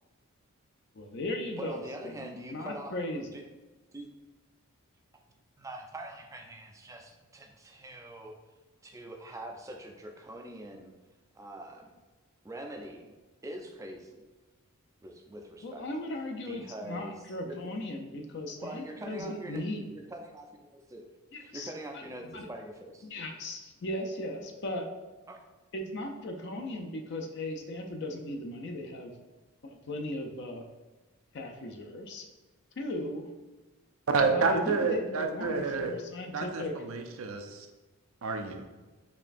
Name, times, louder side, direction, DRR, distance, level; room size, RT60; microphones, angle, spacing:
voice 1, 0.9-3.3 15.6-19.9 21.3-22.0 22.3-22.5 23.0-24.9 25.7-29.1 29.6-30.6 31.3-32.3 32.8-33.3 34.3-36.7, left 1 dB, 50° left, 3 dB, 0.5 m, -37 dB
voice 2, 1.6-2.9 3.3-3.4 3.9-4.1 5.6-8.4 8.9-10.9 11.3-11.9 12.4-13.1 13.4-14.2 15.0-15.9 16.5-17.2 17.4-17.6 18.6-19.6 19.9-21.0 21.4-23.1 25.3-25.4, right 1 dB, 15° right, 2 dB, 0.4 m, -44 dB
voice 3, 34.1-36.0 36.3-37.7 38.2-38.6, right 4 dB, 70° right, 5 dB, 0.5 m, -29 dB
4.3 x 3.1 x 2.5 m, 1.2 s
head